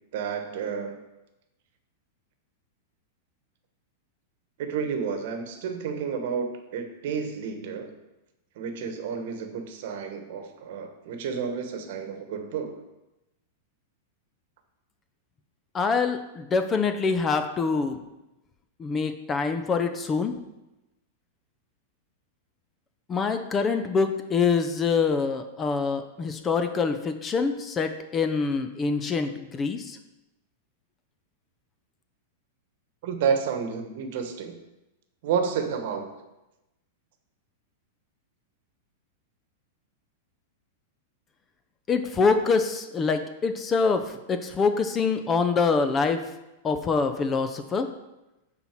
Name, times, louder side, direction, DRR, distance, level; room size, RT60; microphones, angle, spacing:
voice 1, 0.1-1.0 4.6-7.9 8.6-12.8 33.0-34.6 35.2-36.1, right 6 dB, 60° right, 7 dB, 1.1 m, -30 dB
voice 2, 15.7-18.0 18.8-20.3 23.1-30.0 41.9-46.3 46.6-47.9, left 5 dB, 20° left, 8 dB, 0.5 m, -25 dB
11.5 x 4.2 x 4.5 m, 0.98 s
supercardioid pair, 150°, 0 cm